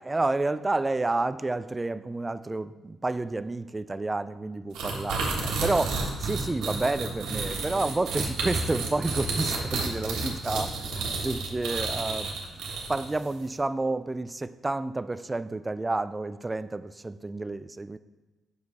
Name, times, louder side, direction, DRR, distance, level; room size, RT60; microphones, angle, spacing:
voice 1, 0.0-18.0, right 2 dB, 20° right, 0.3 m, -30 dB
sound 1, 4.7-13.2, right 3 dB, 90° right, 1.5 m, -31 dB
7.2 x 6.5 x 4.1 m
cardioid pair, 90°, 0 cm